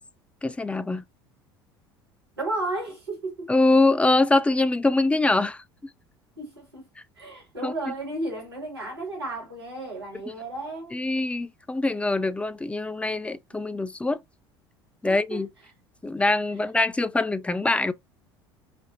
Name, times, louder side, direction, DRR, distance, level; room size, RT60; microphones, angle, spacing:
voice 1, 0.4-1.0 3.5-5.6 7.6-7.7 10.9-14.2 15.0-15.5 16.0-17.9, left 2 dB, 10° left, 0.3 m, -23 dB
voice 2, 2.4-3.5 6.4-6.8 7.2-11.0 15.0-15.4, right 2 dB, 90° right, 2.4 m, -33 dB
5.0 x 2.7 x 2.6 m
figure-of-eight pair, 65°, 13 cm